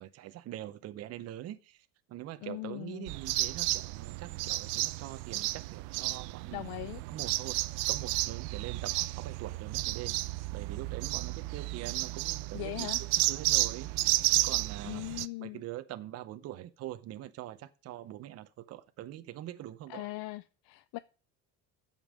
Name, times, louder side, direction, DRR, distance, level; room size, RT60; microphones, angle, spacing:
voice 1, 0.0-6.7 7.1-7.6 7.9-15.0 15.4-20.1, right 13 dB, 40° right, 0.7 m, -44 dB
voice 2, 2.4-3.1 6.5-7.0 12.5-13.0 14.8-15.6 19.9-21.0, left 19 dB, 65° left, 0.6 m, -40 dB
sound 1, 3.1-15.3, right 19 dB, 75° right, 0.7 m, -32 dB
12.5 x 5.4 x 7.5 m
cardioid pair, 165°, 39 cm